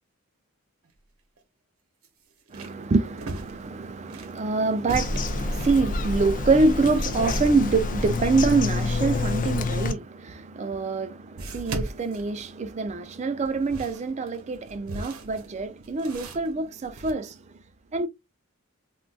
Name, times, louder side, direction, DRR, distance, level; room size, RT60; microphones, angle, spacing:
sound 1, 0.8-1.0 1.4-1.5 2.0-4.4 4.8-5.9 10.1-10.2 11.4-12.9 13.4-17.1, right 2 dB, 80° right, 0.8 m, -38 dB
voice 1, 2.5-17.3 17.9-18.1, right 3 dB, 35° right, 0.4 m, -25 dB
Bird vocalization bird call bird song, 4.9-9.9, left 2 dB, 40° left, 0.4 m, -27 dB
3.7 x 2.3 x 2.3 m
head